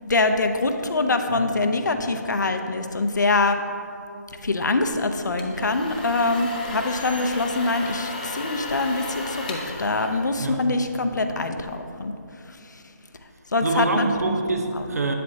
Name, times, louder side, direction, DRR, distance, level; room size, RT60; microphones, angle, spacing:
voice 1, 0.0-3.6 4.4-12.1 13.5-14.1, left 3 dB, 80° left, 6 dB, 0.7 m, -24 dB
sound 1, 5.2-10.9, left 2 dB, 25° left, 0.6 m, -35 dB
voice 2, 13.6-15.1, right 2 dB, 60° right, 4 dB, 0.9 m, -25 dB
8.8 x 7.6 x 2.8 m, 2.6 s
hypercardioid pair, 170°, 10 cm